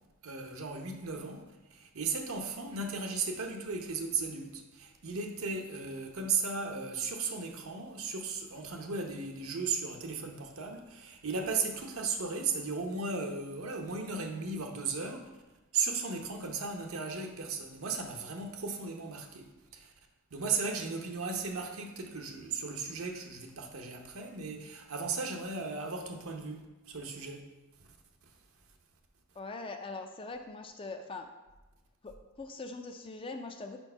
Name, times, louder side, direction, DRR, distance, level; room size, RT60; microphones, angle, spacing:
voice 1, 0.2-1.4 1.7-15.3 15.7-19.9 20.3-27.4 27.8-27.9, right 4 dB, 65° right, 3 dB, 0.8 m, -36 dB
voice 2, 29.3-31.3 32.0-33.8, left 3 dB, 25° left, 5 dB, 0.4 m, -42 dB
4.8 x 4.5 x 5.5 m, 1.1 s
head